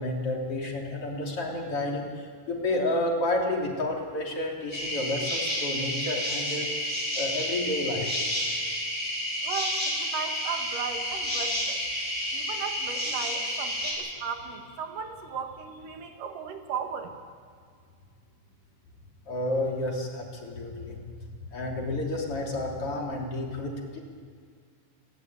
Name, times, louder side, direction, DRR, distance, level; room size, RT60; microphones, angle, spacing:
voice 1, 0.0-6.7 7.1-8.2 19.3-21.0 21.5-24.0, left 1 dB, 45° left, -1 dB, 4.0 m, -30 dB
sound 1, 4.7-13.9, equal, 10° left, 6.9 m, -30 dB
voice 2, 9.4-11.8 12.3-17.1, right 6 dB, 85° right, 4 dB, 3.5 m, -36 dB
30.0 x 12.5 x 9.6 m, 2.1 s
omnidirectional pair, 3.7 m